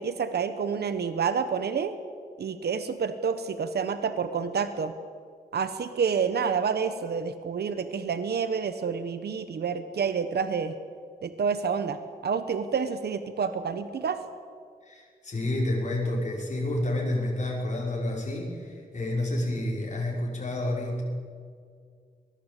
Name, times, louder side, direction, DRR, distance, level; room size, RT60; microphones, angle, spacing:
voice 1, 0.0-1.9 2.4-4.9 5.5-10.7 11.2-14.2, right 6 dB, 85° right, 10 dB, 1.1 m, -28 dB
voice 2, 14.8-21.0, left 1 dB, 45° left, -3 dB, 5.5 m, -29 dB
23.5 x 19.0 x 8.5 m, 2.1 s
wide cardioid pair, 130°, 16 cm